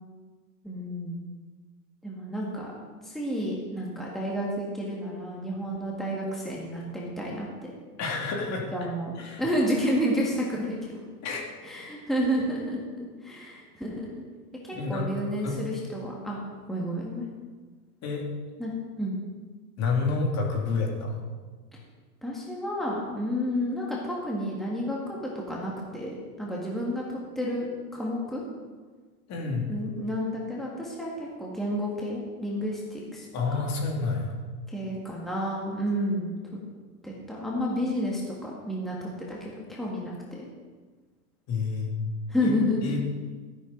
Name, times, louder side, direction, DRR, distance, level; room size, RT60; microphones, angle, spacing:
voice 1, 0.6-1.2 2.0-2.8 3.0-7.7 8.5-9.1 9.4-11.0 11.6-14.2 14.6-16.4 16.7-17.3 18.6-18.7 19.0-19.1 22.2-25.2 25.5-28.4 29.7-33.3 33.5-33.6 34.7-36.3 37.0-40.5 42.3-43.0, equal, ahead, -4 dB, 1.9 m, -30 dB
voice 2, 8.0-8.7 9.2-9.5 11.2-11.4 14.7-15.6 18.0-18.2 19.8-21.3 29.3-29.7 33.3-34.3 41.5-42.0 42.4-42.5 42.8-43.0, left 4 dB, 35° left, 0 dB, 2.7 m, -29 dB
13.0 x 11.0 x 4.0 m, 1.4 s
hypercardioid pair, 130°, 47 cm